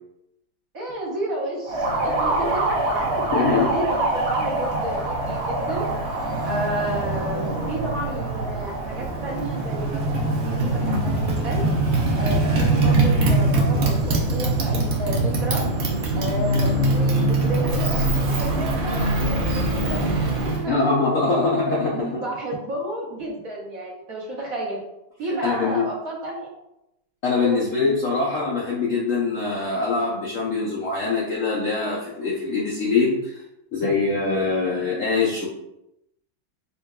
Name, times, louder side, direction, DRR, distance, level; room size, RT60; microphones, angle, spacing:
voice 1, 0.7-5.9 6.4-11.6 12.2-15.6 16.1-20.0 20.4-20.7 21.2-21.4 21.9-24.8 25.2-26.5 27.4-27.8, right 1 dB, 55° right, -4 dB, 1.1 m, -31 dB
Motorcycle, 1.7-20.7, right 2 dB, 85° right, 0.6 m, -23 dB
voice 2, 3.3-3.7 20.7-22.1 25.4-25.9 27.2-33.4 33.7-35.5, left 4 dB, 70° left, -5 dB, 0.7 m, -23 dB
5.4 x 2.2 x 2.2 m, 0.85 s
omnidirectional pair, 2.0 m